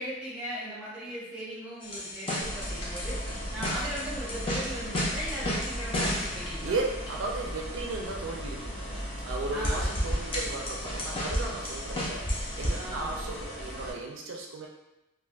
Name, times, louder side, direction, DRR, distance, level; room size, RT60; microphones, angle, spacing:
voice 1, 0.0-3.2 3.5-6.8 9.5-9.9 12.7-13.1, equal, 5° right, -8 dB, 0.9 m, -38 dB
sound 1, 1.8-6.6 9.1-9.2 9.6-12.8, equal, 25° left, 0.5 m, -33 dB
sound 2, 2.4-13.9, equal, 65° left, 0.9 m, -37 dB
voice 2, 3.3-3.6 6.6-14.7, right 3 dB, 65° right, 0 dB, 0.4 m, -36 dB
3.3 x 2.4 x 2.3 m, 0.95 s
head